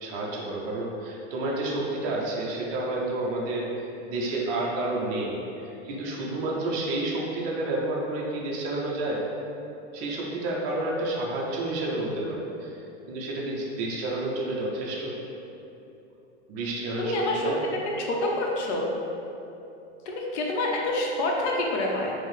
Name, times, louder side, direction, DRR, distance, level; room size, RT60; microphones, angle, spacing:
voice 1, 0.0-9.2 9.9-12.8 13.1-15.2 16.5-17.6, right 2 dB, 25° right, -4 dB, 0.4 m, -30 dB
voice 2, 17.0-17.4 18.0-18.9 20.1-22.1, left 2 dB, 70° left, -1 dB, 0.7 m, -27 dB
4.3 x 2.0 x 3.1 m, 2.9 s
supercardioid pair, 150°, 35 cm